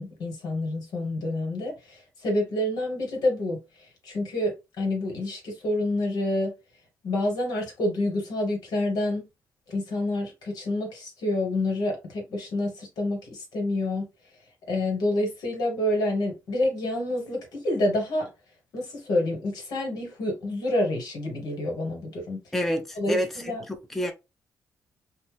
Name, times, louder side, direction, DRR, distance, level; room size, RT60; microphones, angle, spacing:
voice 1, 0.0-6.5 7.0-9.3 9.7-14.1 14.7-18.3 18.7-22.4 23.0-23.6, left 1 dB, 75° left, 1.3 m, -28 dB
voice 2, 22.5-23.3 23.7-24.1, equal, 5° left, 0.6 m, -27 dB
2.7 x 2.1 x 3.3 m
cardioid pair, 70°, 7 cm